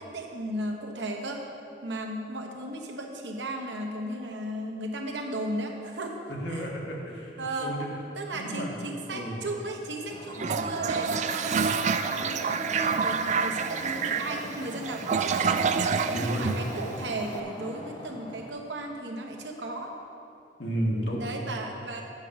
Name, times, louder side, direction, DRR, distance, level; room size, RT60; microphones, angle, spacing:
voice 1, 0.0-1.4 1.8-6.2 6.5-6.7 7.4-7.8 8.1-15.9 16.1-19.9 21.2-22.0, right 1 dB, 85° right, 2 dB, 1.1 m, -35 dB
voice 2, 6.3-7.9 8.3-8.7 9.1-9.4 10.4-10.7 16.1-16.5 20.6-21.2, right 1 dB, 80° left, -2 dB, 1.8 m, -32 dB
sound 1, 10.1-18.5, equal, 30° left, 0.9 m, -43 dB
Toilet flush, 10.3-17.3, right 5 dB, 40° right, 0.3 m, -28 dB
8.7 x 6.2 x 6.3 m, 2.7 s
head